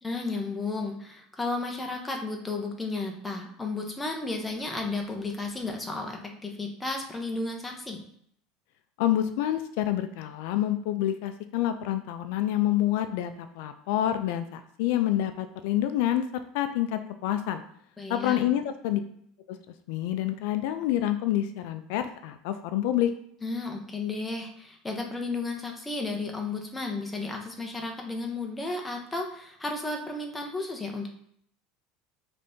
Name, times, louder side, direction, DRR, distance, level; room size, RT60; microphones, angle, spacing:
voice 1, 0.0-8.0 18.0-18.5 23.4-31.1, left 3 dB, 10° left, 2 dB, 0.6 m, -33 dB
voice 2, 9.0-16.3 16.5-17.6 18.1-19.0 19.5-19.6 19.9-23.1, left 12 dB, 70° left, 9 dB, 0.3 m, -27 dB
5.2 x 3.3 x 2.6 m, 0.67 s
cardioid pair, 160°, 0 cm